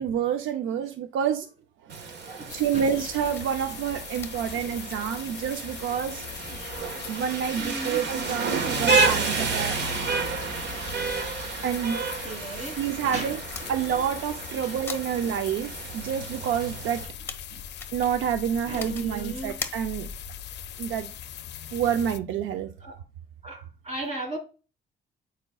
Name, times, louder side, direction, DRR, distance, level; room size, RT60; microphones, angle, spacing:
voice 1, 0.0-1.5 1.8-2.0 2.5-6.6 7.1-10.0 10.4-10.5 11.6-12.0 12.5-13.4 13.7-17.1 17.9-20.1 20.8-21.1 21.7-22.7, right 8 dB, 80° right, 0.6 m, -28 dB
Rain, 1.9-17.0, right 4 dB, 60° right, 1.4 m, -31 dB
voice 2, 2.3-2.9 4.5-4.6 5.0-5.4 6.6-6.7 7.5-8.0 11.8-13.7 14.6-14.8 17.5-17.6 18.7-19.6 22.8-23.0 23.4-24.4, right 2 dB, 35° right, 3.4 m, -37 dB
sound 1, 2.5-22.2, left 9 dB, 60° left, 0.5 m, -41 dB
sound 2, 3.3-20.3, left 4 dB, 10° left, 1.2 m, -47 dB
8.8 x 5.1 x 2.3 m
cardioid pair, 90°, 20 cm